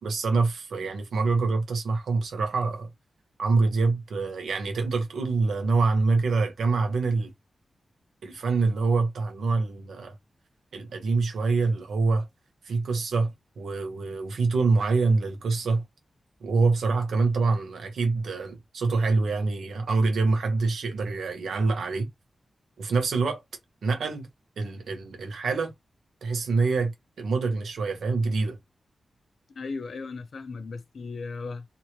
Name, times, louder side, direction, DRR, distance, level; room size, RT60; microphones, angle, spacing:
voice 1, 0.0-2.9 3.4-7.3 8.2-10.1 10.7-12.2 12.6-15.8 16.4-22.1 22.8-23.4 23.8-24.3 24.6-25.7 26.2-26.9 27.2-28.6, right 3 dB, 90° right, 1.3 m, -25 dB
voice 2, 29.6-31.6, left 4 dB, 65° left, 0.6 m, -36 dB
3.3 x 3.1 x 3.0 m
wide cardioid pair, 115°, 0 cm